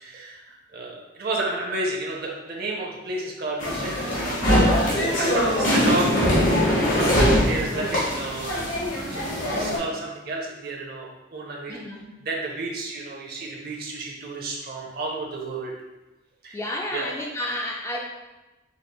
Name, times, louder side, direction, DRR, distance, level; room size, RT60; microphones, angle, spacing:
voice 1, 0.0-11.8 12.2-15.7 16.4-16.6 16.9-17.1, right 3 dB, 50° right, -1 dB, 0.7 m, -31 dB
sound 1, 3.6-9.8, left 1 dB, 80° left, 1.4 m, -22 dB
voice 2, 11.7-12.1 16.5-18.0, left 1 dB, 15° left, -1 dB, 0.3 m, -31 dB
5.1 x 3.2 x 2.3 m, 1.1 s
head